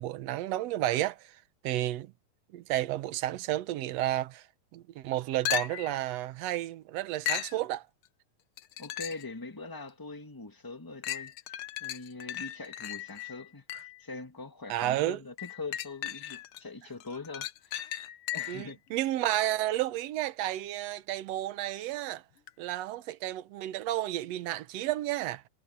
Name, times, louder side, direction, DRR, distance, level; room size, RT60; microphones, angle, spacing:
voice 1, 0.0-1.4 1.6-2.1 2.5-4.5 4.7-7.9 14.7-15.2 18.5-22.2 22.6-25.4, right 14 dB, 70° right, 1.9 m, -31 dB
sound 1, 5.5-6.0 7.3-7.6 8.6-9.3 9.9-10.0 11.0-14.0 15.4-16.6 17.0-18.7 22.5-22.6, left 13 dB, 70° left, 1.3 m, -36 dB
voice 2, 8.8-11.3 11.8-17.8 18.3-18.8, left 3 dB, 10° left, 1.1 m, -42 dB
omnidirectional pair, 3.3 m